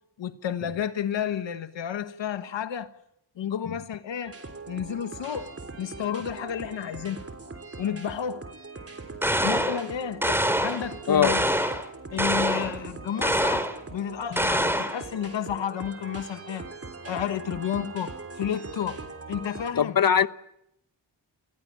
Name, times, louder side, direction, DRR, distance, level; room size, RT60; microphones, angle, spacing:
voice 1, 0.2-2.9 3.4-4.4 4.7-5.5 5.8-7.3 7.8-8.4 9.4-10.2 10.6-11.4 12.1-16.6 17.0-19.0 19.3-20.0, left 9 dB, 90° left, 1.4 m, -31 dB
sound 1, 4.2-19.7, right 3 dB, 30° right, 3.3 m, -41 dB
sound 2, 9.2-9.8 10.2-10.8 11.2-11.8 12.2-12.7 13.2-13.8 14.4-15.0, equal, 5° right, 2.8 m, -25 dB
voice 2, 19.7-20.3, left 8 dB, 50° left, 1.1 m, -21 dB
29.0 x 16.0 x 8.8 m
cardioid pair, 70°, 43 cm